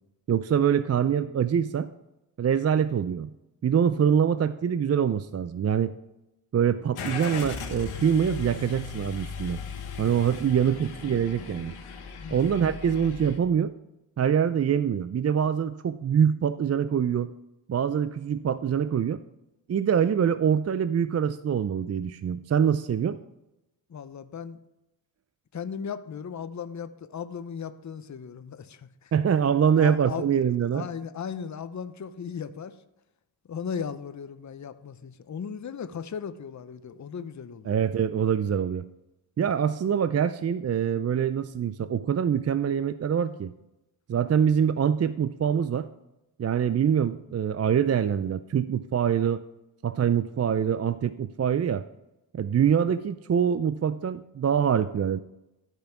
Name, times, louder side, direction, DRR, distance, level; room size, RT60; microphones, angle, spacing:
voice 1, 0.3-1.9 2.4-3.3 3.6-5.9 6.5-9.6 10.0-11.8 12.3-13.7 14.2-17.3 17.7-19.2 19.7-23.2 29.1-30.9 37.7-38.8 39.4-43.5 44.1-45.9 46.4-49.4 49.8-51.8 52.3-55.2, right 8 dB, 35° right, 13 dB, 0.4 m, -24 dB
Car / Engine starting, 6.9-13.4, left 5 dB, 85° left, 1.4 m, -37 dB
voice 2, 12.2-12.5 23.9-24.6 25.5-29.1 29.8-30.2 30.7-32.8 33.5-37.8, left 7 dB, 35° left, 12 dB, 0.7 m, -37 dB
12.5 x 5.2 x 4.5 m, 0.92 s
cardioid pair, 50°, 49 cm